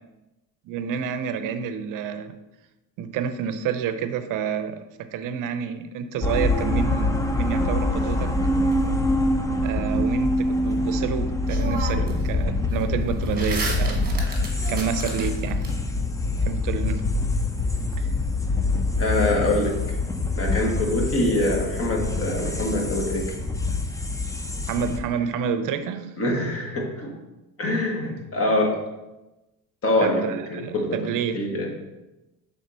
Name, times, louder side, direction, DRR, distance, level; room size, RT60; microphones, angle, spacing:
voice 1, 0.7-2.4 3.0-8.3 9.6-14.1 14.7-15.6 16.4-17.0 17.9-18.1 24.7-26.2 30.0-31.5, right 7 dB, 60° right, 10 dB, 0.6 m, -29 dB
sound 1, 6.2-25.0, left 2 dB, 10° left, 0.4 m, -25 dB
sound 2, 7.4-8.7 11.0-11.1 11.5-12.3 12.6-15.7, right 3 dB, 25° right, 1.3 m, -34 dB
voice 2, 19.0-19.8 20.3-23.3 26.2-27.1 27.6-28.8 29.8-31.0 31.3-31.7, left 1 dB, 40° left, 0 dB, 1.5 m, -24 dB
6.4 x 3.7 x 4.1 m, 1.0 s
cardioid pair, 105°, 36 cm